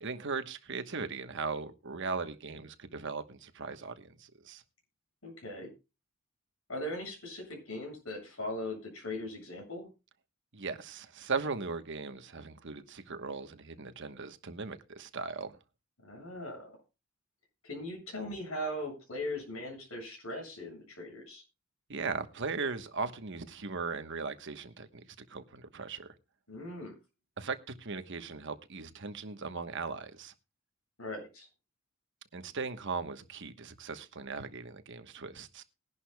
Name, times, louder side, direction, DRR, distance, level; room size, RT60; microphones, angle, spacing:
voice 1, 0.0-4.6 10.5-15.6 21.9-25.0 25.3-26.1 27.4-30.3 32.3-35.6, right 4 dB, 60° right, 1.2 m, -38 dB
voice 2, 5.2-5.7 6.7-9.9 16.0-16.7 17.6-21.4 26.5-26.9 31.0-31.5, left 1 dB, 85° left, 7.6 m, -39 dB
21.0 x 11.0 x 2.3 m
head